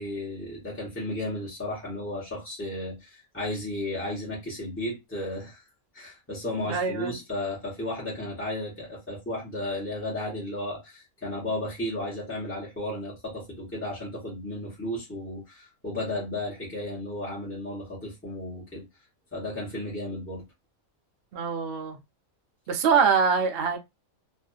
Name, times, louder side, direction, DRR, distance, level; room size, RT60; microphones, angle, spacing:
voice 1, 0.0-5.6 5.9-18.8 19.3-20.4, left 1 dB, 10° left, 0.7 m, -34 dB
voice 2, 6.7-7.1 21.3-22.0 22.7-23.8, right 6 dB, 65° right, 0.6 m, -24 dB
2.5 x 2.3 x 2.3 m
omnidirectional pair, 1.5 m